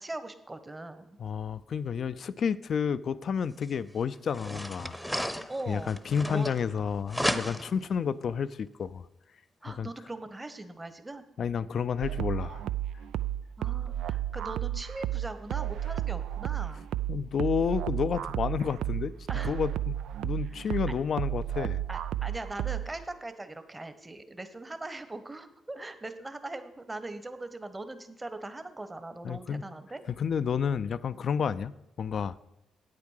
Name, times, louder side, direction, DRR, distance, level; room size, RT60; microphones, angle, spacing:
voice 1, 0.0-1.2 5.5-6.5 9.6-11.2 13.6-16.8 19.3-19.6 20.5-20.8 21.9-30.0, right 2 dB, 25° right, 10 dB, 1.2 m, -40 dB
voice 2, 1.2-5.0 5.7-9.1 9.7-9.9 11.4-12.6 17.1-19.1 19.4-20.0 20.2-21.8 29.2-29.6 30.2-32.4, left 7 dB, 60° left, 16 dB, 0.5 m, -30 dB
sound 1, 3.6-3.7 4.3-6.8 7.1-7.9, equal, ahead, 0.9 m, -33 dB
sound 2, 12.0-23.0, right 12 dB, 75° right, 0.3 m, -32 dB
8.7 x 8.6 x 6.5 m, 0.89 s
hypercardioid pair, 45°, 0 cm